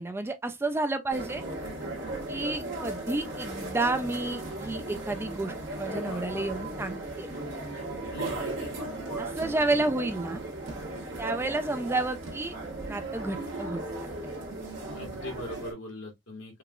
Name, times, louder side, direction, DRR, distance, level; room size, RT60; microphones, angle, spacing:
voice 1, 0.0-1.4 2.3-7.3 9.2-10.4 11.2-12.5 12.9-14.1, right 2 dB, 10° right, 0.3 m, -31 dB
sound 1, 1.1-15.7, right 2 dB, 70° right, 1.6 m, -36 dB
voice 2, 8.1-8.8 14.9-16.6, left 1 dB, 75° left, 1.6 m, -41 dB
sound 2, 8.2-13.8, right 2 dB, 85° right, 1.2 m, -50 dB
4.7 x 2.3 x 2.2 m
head